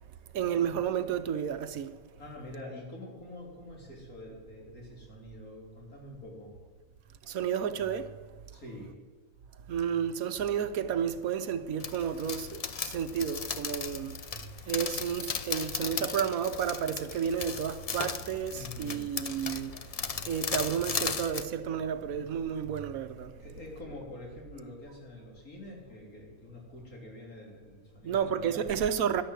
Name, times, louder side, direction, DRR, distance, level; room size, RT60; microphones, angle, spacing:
voice 1, 0.3-2.0 7.2-8.1 9.7-14.2 14.7-20.0 20.2-23.3 28.0-29.2, right 8 dB, 75° right, 1.3 m, -31 dB
voice 2, 2.2-6.5 8.5-9.0 18.5-19.1 23.4-28.8, left 1 dB, 80° left, 4.0 m, -46 dB
sound 1, 11.8-21.5, left 6 dB, 50° left, 0.4 m, -36 dB
11.5 x 11.5 x 8.0 m
omnidirectional pair, 1.5 m